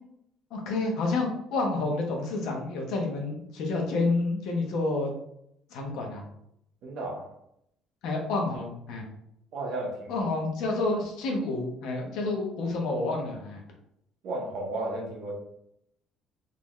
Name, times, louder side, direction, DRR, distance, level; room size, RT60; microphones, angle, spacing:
voice 1, 0.5-5.1 5.7-6.2 8.0-9.0 10.1-13.6, left 3 dB, 65° left, 1 dB, 1.0 m, -29 dB
voice 2, 6.8-7.2 9.5-10.3 14.2-15.3, right 2 dB, 55° right, -1 dB, 1.1 m, -33 dB
3.9 x 2.9 x 3.1 m, 0.75 s
cardioid pair, 155°, 0 cm